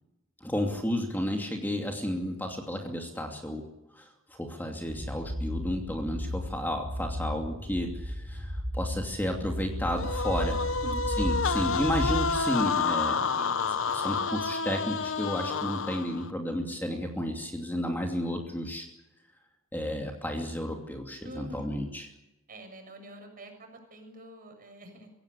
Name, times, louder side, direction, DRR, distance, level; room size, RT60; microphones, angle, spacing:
voice 1, 0.4-3.6 3.9-10.6 11.2-13.3 13.9-18.9 19.7-22.1, equal, 10° left, 2 dB, 2.7 m, -32 dB
sound 1, 4.9-12.4, left 1 dB, 80° right, 6.0 m, -34 dB
sound 2, 10.0-16.3, left 5 dB, 70° left, 1.1 m, -29 dB
voice 2, 10.6-11.0 13.3-13.7 21.2-21.7 22.5-25.1, right 1 dB, 45° right, 5 dB, 7.0 m, -46 dB
25.0 x 17.0 x 8.4 m, 0.92 s
head